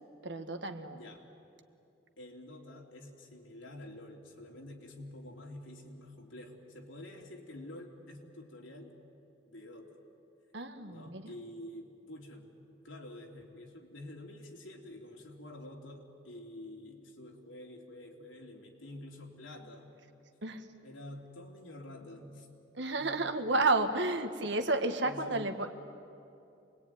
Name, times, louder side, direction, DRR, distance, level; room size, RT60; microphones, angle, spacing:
voice 1, 0.2-1.0 10.5-11.3 20.4-20.7 22.7-25.7, right 2 dB, 60° right, 7 dB, 1.6 m, -31 dB
voice 2, 2.2-8.9 9.5-10.0 10.9-12.5 12.8-19.9 20.8-22.5 23.0-23.3 25.0-25.5, left 1 dB, 80° left, 0 dB, 3.3 m, -48 dB
27.0 x 21.0 x 9.5 m, 2.7 s
head